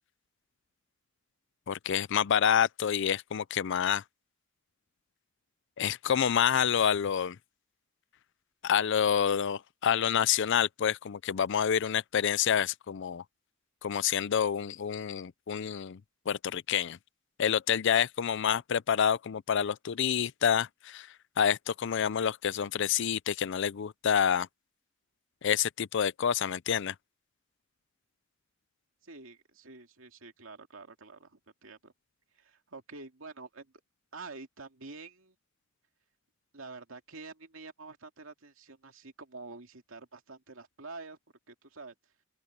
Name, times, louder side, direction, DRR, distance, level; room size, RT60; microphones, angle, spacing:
voice 1, 1.7-4.0 5.8-7.4 8.6-13.2 13.8-16.0 16.3-17.0 17.4-21.1 21.4-24.5 25.4-26.9, left 8 dB, 60° left, 0.5 m, -28 dB
voice 2, 29.0-31.9 32.4-33.7 34.1-35.3 36.5-41.2 41.5-41.9, right 3 dB, 75° right, 2.5 m, -47 dB
open air
head